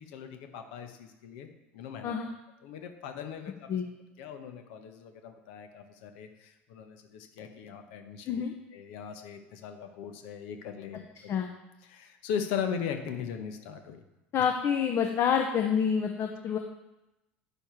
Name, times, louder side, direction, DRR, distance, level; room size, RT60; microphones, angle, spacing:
voice 1, 0.0-1.5 1.7-2.1 2.6-3.8 4.2-8.4 8.7-11.4 11.8-14.0, left 7 dB, 70° left, 6 dB, 1.1 m, -39 dB
voice 2, 14.3-16.6, left 7 dB, 45° left, 3 dB, 1.0 m, -27 dB
9.0 x 7.0 x 4.6 m, 0.95 s
hypercardioid pair, 80°, 6 cm